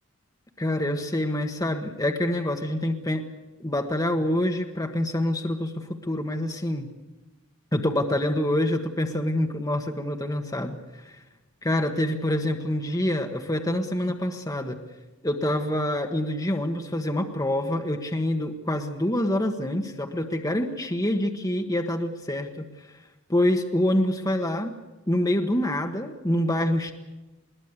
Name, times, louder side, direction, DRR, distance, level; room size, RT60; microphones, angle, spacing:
voice 1, 0.6-3.2 3.6-6.9 7.7-11.2 11.6-14.8 15.2-23.0 23.3-24.7 25.1-26.9, left 1 dB, 15° left, 4 dB, 1.4 m, -26 dB
21.5 x 20.0 x 8.3 m, 1.1 s
head